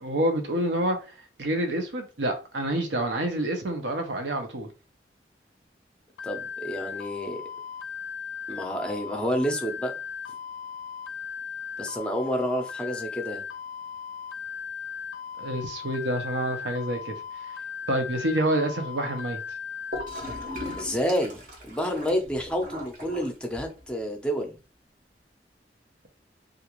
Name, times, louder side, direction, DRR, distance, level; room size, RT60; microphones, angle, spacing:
voice 1, 0.0-1.0 1.4-4.7 15.4-17.1 17.9-19.4, right 1 dB, 90° right, 0.7 m, -27 dB
sound 1, 6.2-20.8, left 7 dB, 85° left, 0.4 m, -37 dB
voice 2, 6.2-7.4 8.5-9.9 11.8-13.4 20.7-24.6, equal, 5° left, 0.5 m, -29 dB
Gurgling / Toilet flush, 19.9-23.9, equal, 50° right, 0.7 m, -39 dB
2.4 x 2.4 x 2.9 m
head